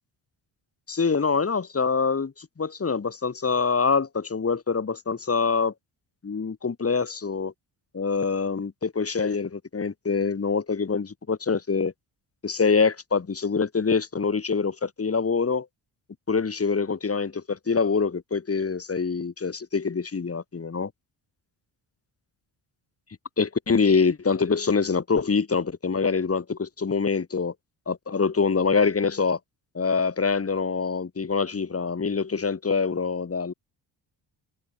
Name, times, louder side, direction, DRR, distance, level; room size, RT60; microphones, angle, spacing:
voice 1, 0.9-5.7 6.2-7.5 7.9-11.9 12.4-15.7 16.3-20.9 23.4-27.5 27.9-29.4 29.7-33.5, left 5 dB, 30° left, 2.1 m, -25 dB
supercardioid pair, 65°, 48 cm